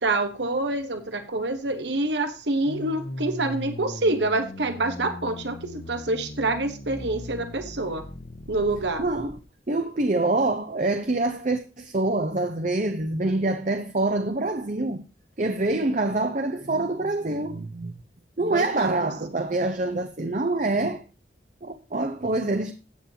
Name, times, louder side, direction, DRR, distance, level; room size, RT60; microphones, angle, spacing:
voice 1, 0.0-8.0 8.5-9.1 18.5-19.1, right 2 dB, 80° right, 1.3 m, -27 dB
sound 1, 2.7-9.4, left 1 dB, 60° left, 1.2 m, -39 dB
voice 2, 9.0-9.4 9.7-15.0 15.4-17.9 18.4-21.0 21.6-22.7, right 2 dB, 45° right, 0.8 m, -25 dB
14.5 x 8.7 x 2.8 m
head